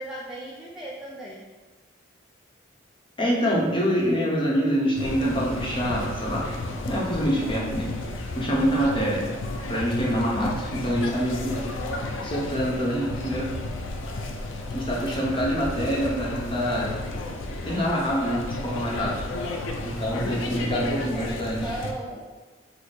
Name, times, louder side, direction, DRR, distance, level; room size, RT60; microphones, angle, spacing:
voice 1, 0.0-1.5 16.1-16.2 20.4-22.3, right 1 dB, ahead, -7 dB, 0.4 m, -38 dB
voice 2, 3.2-6.5 6.9-7.9 8.3-9.3 9.7-11.6 12.2-13.5 14.7-16.9 17.6-19.2 19.8-21.6, equal, 25° left, -4 dB, 0.8 m, -25 dB
sound 1, 4.9-21.9, left 2 dB, 85° left, 0.5 m, -33 dB
5.0 x 2.0 x 4.1 m, 1.3 s
head